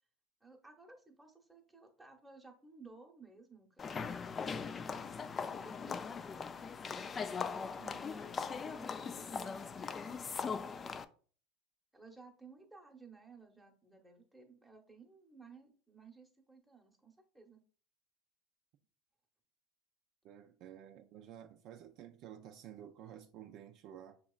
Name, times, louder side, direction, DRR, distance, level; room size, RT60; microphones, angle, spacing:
voice 1, 0.4-6.1 7.8-11.0 11.9-17.6, right 3 dB, 5° right, 0.9 m, -58 dB
sound 1, 3.8-11.0, left 5 dB, 25° left, 0.3 m, -40 dB
voice 2, 20.2-24.2, right 10 dB, 55° right, 0.4 m, -52 dB
6.0 x 2.9 x 2.4 m
supercardioid pair, 110°, 0 cm